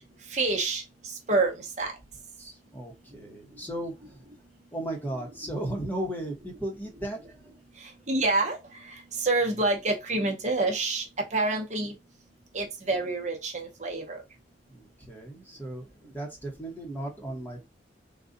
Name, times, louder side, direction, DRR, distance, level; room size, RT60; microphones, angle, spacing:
voice 1, 0.3-0.8 1.3-1.9 8.1-8.6 9.2-12.0 12.5-14.2, right 3 dB, 40° right, 0.9 m, -27 dB
voice 2, 2.4-4.2 4.7-7.5 14.7-17.7, right 1 dB, 10° left, 1.0 m, -36 dB
3.9 x 2.4 x 3.8 m
head